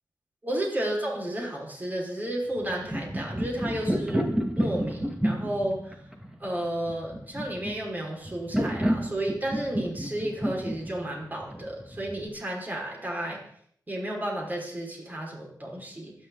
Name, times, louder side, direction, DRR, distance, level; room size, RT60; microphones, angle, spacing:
voice 1, 0.4-6.0 6.4-13.4 13.9-16.1, right 1 dB, 25° right, -2 dB, 5.3 m, -32 dB
sound 1, 2.6-12.3, equal, 10° right, 2.2 m, -30 dB
26.0 x 10.5 x 4.0 m, 0.63 s
wide cardioid pair, 120°, 7 cm